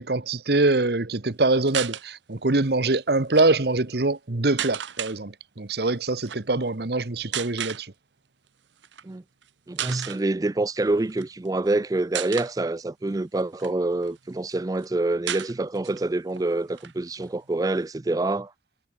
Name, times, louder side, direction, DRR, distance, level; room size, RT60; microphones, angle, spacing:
voice 1, 0.0-7.9, right 2 dB, 60° right, 1.1 m, -24 dB
sound 1, 1.7-2.0 3.2-3.5 4.6-5.2 6.2-6.4 7.3-7.8 8.8-9.0 9.4-9.5 9.8-10.2 11.1-11.7 12.1-12.5 13.1-14.2 14.5-14.6 14.8-14.9 15.3-16.0 16.3-16.4 16.7-17.8, right 10 dB, 85° right, 1.1 m, -33 dB
voice 2, 9.7-18.5, right 2 dB, 20° right, 0.4 m, -26 dB
head